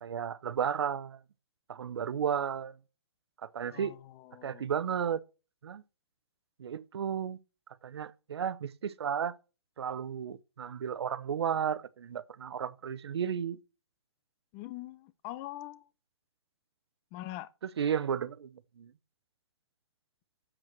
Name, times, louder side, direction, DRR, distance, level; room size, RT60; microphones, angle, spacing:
voice 1, 0.0-1.2 1.7-2.7 3.4-3.9 4.4-5.2 5.6-5.8 6.6-7.4 7.8-9.3 9.8-13.6 17.6-18.5 18.8-18.9, right 8 dB, 80° right, 0.8 m, -33 dB
voice 2, 4.3-4.7 14.5-15.8 17.1-17.5, left 16 dB, 25° left, 0.7 m, -42 dB
9.1 x 7.6 x 6.2 m
hypercardioid pair, 150°, 14 cm